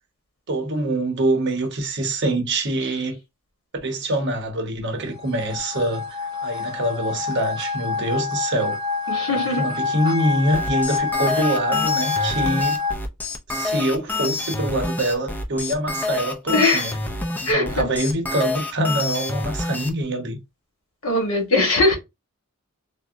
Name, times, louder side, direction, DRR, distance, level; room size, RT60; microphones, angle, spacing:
voice 1, 0.5-3.2 3.8-8.8 9.3-12.8 13.5-17.0 17.4-20.4, right 1 dB, 55° right, 0.7 m, -25 dB
sound 1, 5.2-12.9, left 4 dB, 20° right, 0.7 m, -26 dB
voice 2, 9.1-9.6 16.5-16.8 17.5-17.9 21.0-22.0, left 2 dB, 70° left, 1.1 m, -20 dB
sound 2, 10.5-19.9, left 3 dB, 10° left, 0.3 m, -28 dB
3.5 x 2.0 x 2.5 m
head